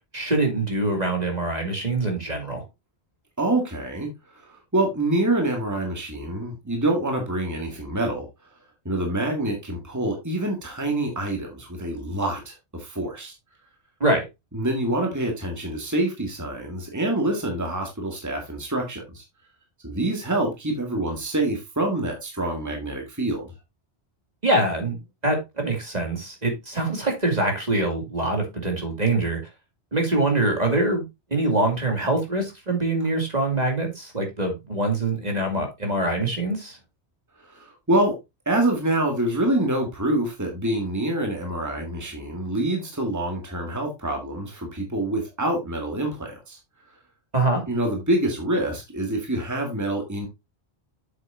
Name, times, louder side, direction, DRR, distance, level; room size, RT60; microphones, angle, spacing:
voice 1, 0.1-2.6 14.0-14.3 24.4-25.0 25.2-29.4 29.9-31.0 31.3-36.8 47.3-47.6, right 2 dB, 40° right, 2.4 m, -24 dB
voice 2, 3.4-8.3 8.9-13.3 14.5-19.2 19.8-23.5 37.4-38.2 38.5-46.6 47.7-50.3, right 1 dB, 15° right, 1.9 m, -26 dB
8.1 x 7.6 x 2.5 m
omnidirectional pair, 1.1 m